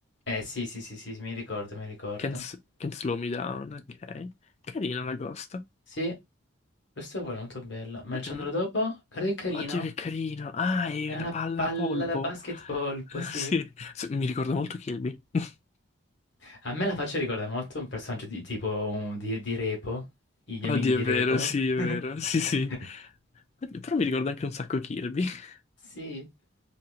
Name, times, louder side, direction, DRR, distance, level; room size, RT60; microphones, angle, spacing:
voice 1, 0.3-2.4 6.0-6.1 7.0-9.9 11.1-11.3 11.6-12.4 12.7-13.6 16.4-20.0 20.5-21.5 21.8-22.0 25.8-26.3, left 1 dB, 65° left, 1.4 m, -32 dB
voice 2, 2.2-4.3 4.7-5.6 8.1-8.5 9.5-12.3 13.1-15.5 20.6-23.0 23.6-25.6, left 4 dB, 35° left, 0.3 m, -30 dB
2.9 x 2.8 x 2.4 m
head